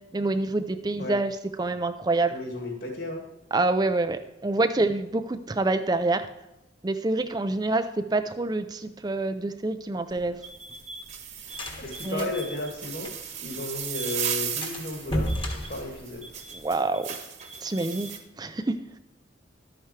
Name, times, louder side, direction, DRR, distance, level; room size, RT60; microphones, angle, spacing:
voice 1, 0.1-2.3 3.5-6.3 6.8-10.4 12.0-12.3 16.5-17.2 17.6-18.1 18.4-18.8, right 2 dB, 20° right, 9 dB, 0.4 m, -26 dB
voice 2, 2.3-3.2 11.8-13.1 13.4-15.4 15.7-16.3, left 2 dB, 55° left, 1 dB, 2.3 m, -34 dB
sound 1, 10.1-13.5 13.8-13.9 14.2-14.3 14.6-16.7, equal, 25° left, 1.3 m, -34 dB
sound 2, 10.4-18.2, right 7 dB, 35° right, 1.3 m, -36 dB
12.0 x 8.9 x 3.2 m, 0.93 s
head